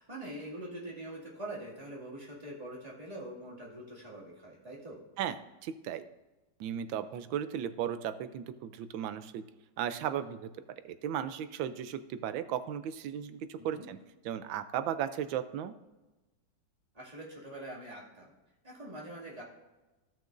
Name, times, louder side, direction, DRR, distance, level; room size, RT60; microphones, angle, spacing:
voice 1, 0.0-5.0 13.6-13.9 16.9-18.3 18.6-19.4, right 1 dB, 20° right, -4 dB, 2.2 m, -44 dB
voice 2, 5.6-6.0 6.6-9.4 9.8-10.5 10.8-14.0 14.2-15.7, right 9 dB, 90° right, 11 dB, 1.4 m, -35 dB
16.0 x 6.1 x 2.6 m, 1.1 s
omnidirectional pair, 2.1 m